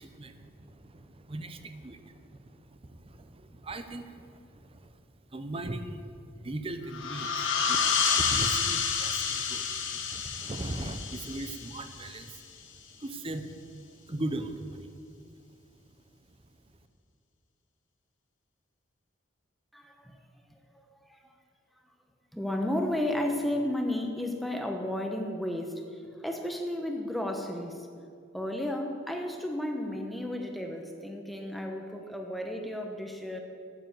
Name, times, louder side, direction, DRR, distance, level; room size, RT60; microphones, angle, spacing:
voice 1, 0.0-5.0 5.3-7.4 7.7-7.9 8.1-12.3 13.0-13.8 14.1-14.9, right 1 dB, 30° right, 8 dB, 0.6 m, -39 dB
sound 1, 6.9-12.3, left 6 dB, 70° left, 1.1 m, -29 dB
voice 2, 19.7-20.2 20.5-20.6 20.8-21.3 22.3-27.9 28.3-33.4, left 1 dB, ahead, 3 dB, 0.9 m, -33 dB
9.0 x 7.9 x 7.9 m, 2.4 s
head